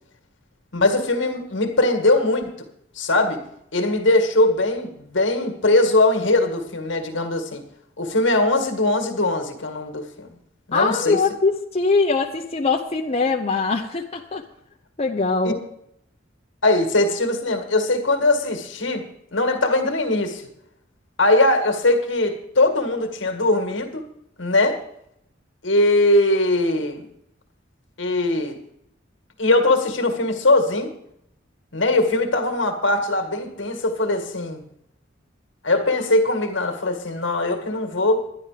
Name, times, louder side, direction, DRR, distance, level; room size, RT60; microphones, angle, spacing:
voice 1, 0.7-2.7 3.0-3.4 3.7-7.6 8.0-10.4 10.7-11.2 15.4-15.5 16.6-20.5 21.2-24.1 24.4-24.8 25.6-27.0 28.0-28.6 29.4-30.9 31.7-34.6 35.6-38.2, left 2 dB, 70° left, 5 dB, 1.9 m, -21 dB
voice 2, 10.7-14.4 15.0-15.6, left 4 dB, 35° left, 1 dB, 0.8 m, -22 dB
12.0 x 10.5 x 5.0 m, 0.75 s
head